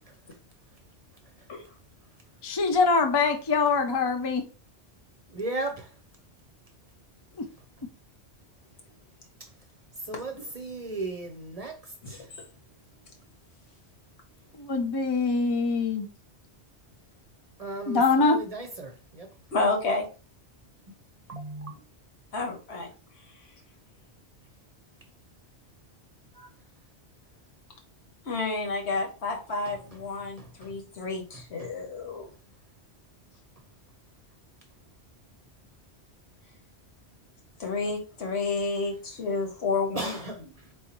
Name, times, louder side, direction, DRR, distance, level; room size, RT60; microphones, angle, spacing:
voice 1, 2.4-4.4 7.4-7.5 14.6-16.1 17.9-18.4, left 4 dB, 40° left, 0.3 m, -24 dB
voice 2, 5.3-5.9 9.4-9.5 10.0-12.3 17.6-19.3 21.3-21.7 26.3-26.5 29.7-29.8 30.4-30.7 31.3-31.7 39.9-40.7, right 2 dB, 40° right, 0.7 m, -36 dB
voice 3, 19.5-20.0 22.3-22.9 28.3-32.3 37.6-40.2, left 3 dB, 75° left, 1.4 m, -30 dB
4.0 x 3.7 x 2.9 m
omnidirectional pair, 1.1 m